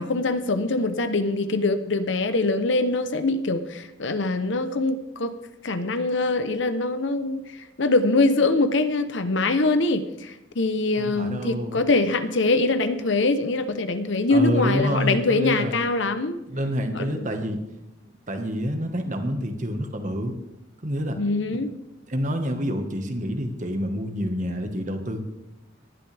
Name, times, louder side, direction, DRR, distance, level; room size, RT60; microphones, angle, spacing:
voice 1, 0.0-5.3 5.6-7.4 7.8-16.4 16.9-17.3 21.2-21.7, left 2 dB, 70° left, 10 dB, 0.9 m, -23 dB
voice 2, 11.0-11.8 14.3-15.7 16.5-17.6 18.3-20.4 20.8-21.2 21.5-21.6 22.1-25.2, equal, 40° right, 5 dB, 1.6 m, -27 dB
19.0 x 11.5 x 3.5 m, 0.91 s
head